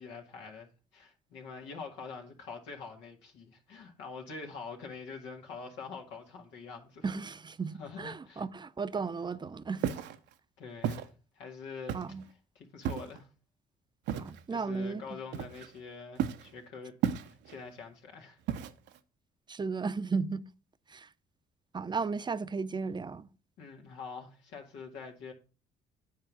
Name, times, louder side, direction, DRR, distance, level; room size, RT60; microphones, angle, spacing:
voice 1, 0.0-7.1 7.8-8.4 10.6-12.0 12.6-13.3 14.5-16.9 17.2-18.4 23.6-25.3, left 5 dB, 80° left, 1.9 m, -45 dB
voice 2, 7.0-9.9 11.9-12.2 14.1-15.0 19.5-20.4 20.9-21.1 21.7-23.3, right 4 dB, 25° right, 0.7 m, -35 dB
Walk footsteps, 9.8-10.2 10.8-11.1 11.9-12.2 12.8-13.2 14.1-14.4 15.3-15.8 16.2-16.5 17.0-17.6 18.5-19.0, right 9 dB, 70° right, 0.7 m, -33 dB
9.4 x 3.8 x 6.1 m
supercardioid pair, 60°, 18 cm